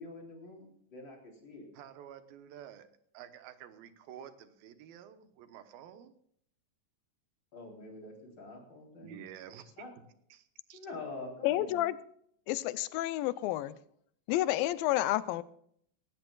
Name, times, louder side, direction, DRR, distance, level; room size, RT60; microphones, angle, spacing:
voice 1, 0.0-1.7 7.5-9.2 9.8-9.9 10.7-11.8, left 3 dB, 30° left, 0 dB, 4.0 m, -46 dB
voice 2, 1.7-2.9 3.1-6.1 9.0-9.7 10.3-10.8, right 10 dB, 90° right, 10 dB, 2.9 m, -50 dB
voice 3, 11.4-12.0 12.5-13.7 14.3-15.4, left 15 dB, 85° left, 15 dB, 2.4 m, -30 dB
19.0 x 16.5 x 2.4 m, 0.66 s
omnidirectional pair, 4.0 m